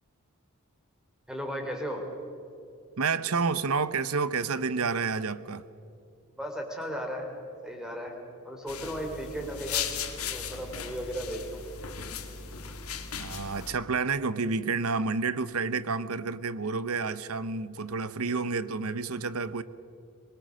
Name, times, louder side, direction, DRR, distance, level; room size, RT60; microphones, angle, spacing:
voice 1, 1.3-2.1 6.4-7.3 7.6-8.2 8.4-9.9 10.3-11.6, equal, 5° right, 2 dB, 3.2 m, -35 dB
voice 2, 3.0-5.6 13.2-19.6, right 4 dB, 80° right, 15 dB, 0.8 m, -29 dB
sound 1, 8.7-13.7, left 7 dB, 85° left, 2.2 m, -37 dB
23.5 x 21.0 x 6.4 m, 2.7 s
head